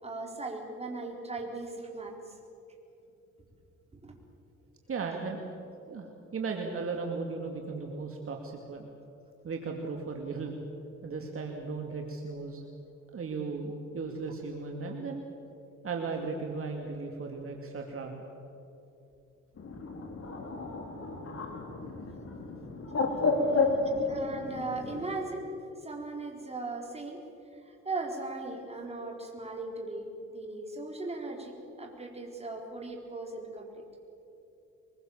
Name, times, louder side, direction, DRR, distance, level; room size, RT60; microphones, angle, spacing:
voice 1, 0.0-2.1 4.0-4.1 24.1-25.4 25.8-27.2 27.5-33.8, right 3 dB, 20° right, 1 dB, 4.3 m, -38 dB
voice 2, 4.9-5.4 5.9-8.9 9.4-10.6 11.0-12.6 13.1-15.2 15.8-18.3, right 4 dB, 45° right, 2 dB, 2.5 m, -36 dB
Bird, 19.6-25.1, left 3 dB, 50° left, 4.2 m, -31 dB
23.5 x 21.5 x 7.4 m, 2.9 s
cardioid pair, 90°, 30 cm